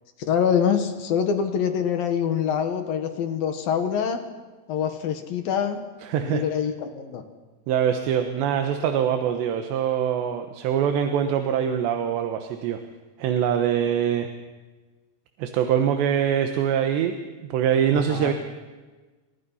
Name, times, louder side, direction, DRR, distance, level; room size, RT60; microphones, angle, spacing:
voice 1, 0.3-4.2 4.7-5.8 6.2-7.2 17.9-18.3, left 7 dB, 65° left, 7 dB, 3.0 m, -25 dB
voice 2, 6.0-6.4 7.7-12.8 13.2-14.3 15.4-17.2 17.5-18.3, right 9 dB, 80° right, 6 dB, 3.4 m, -23 dB
28.5 x 25.0 x 5.7 m, 1.3 s
omnidirectional pair, 4.9 m